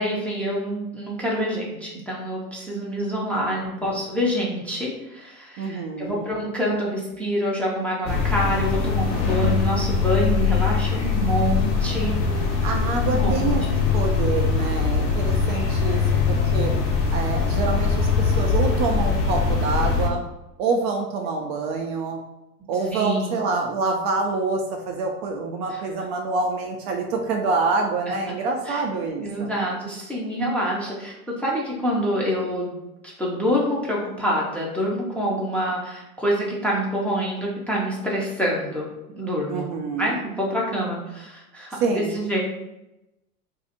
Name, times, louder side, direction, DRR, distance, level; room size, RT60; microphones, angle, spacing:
voice 1, 0.0-12.2 13.1-13.5 22.9-23.3 25.7-25.8 28.1-28.2 28.7-28.8 29.2-32.8 33.2-38.9 39.2-39.7 39.9-42.4, equal, 5° left, -5 dB, 0.6 m, -26 dB
voice 2, 5.6-6.3 12.6-13.6 13.9-16.0 16.3-16.7 17.1-20.2 20.6-22.2 22.7-29.5 39.5-40.2 41.8-42.1, right 4 dB, 45° right, 2 dB, 0.5 m, -26 dB
sound 1, 8.0-20.1, left 5 dB, 60° left, 1.1 m, -22 dB
2.6 x 2.4 x 4.2 m, 0.92 s
hypercardioid pair, 95°, 48 cm